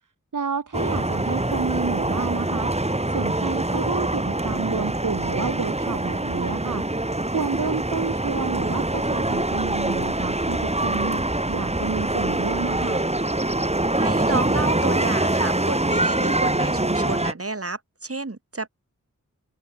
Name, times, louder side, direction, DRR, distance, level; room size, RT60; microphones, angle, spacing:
voice 1, 0.3-2.7 3.1-6.8 7.3-13.1, right 5 dB, 70° right, 2.0 m, -30 dB
sound 1, 0.7-17.3, right 1 dB, 20° right, 2.5 m, -24 dB
voice 2, 13.9-18.7, right 3 dB, 45° right, 6.0 m, -30 dB
open air
wide cardioid pair, 60°, 32 cm